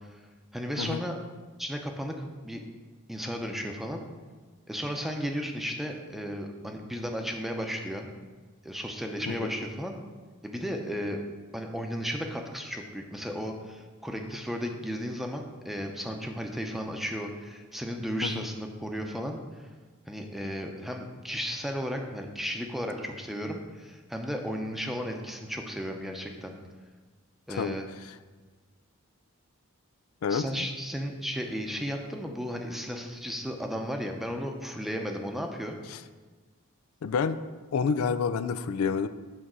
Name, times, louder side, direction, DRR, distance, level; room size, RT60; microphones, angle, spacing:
voice 1, 0.5-1.2 1.6-2.6 3.1-4.0 4.7-8.1 8.6-9.9 10.4-11.2 11.5-19.7 20.1-26.6 27.5-27.9 30.3-35.8, equal, ahead, 3 dB, 0.6 m, -34 dB
voice 2, 30.2-30.7 35.9-36.0 37.0-37.4 37.7-39.1, left 5 dB, 90° left, 12 dB, 0.4 m, -28 dB
8.9 x 4.0 x 6.1 m, 1.4 s
head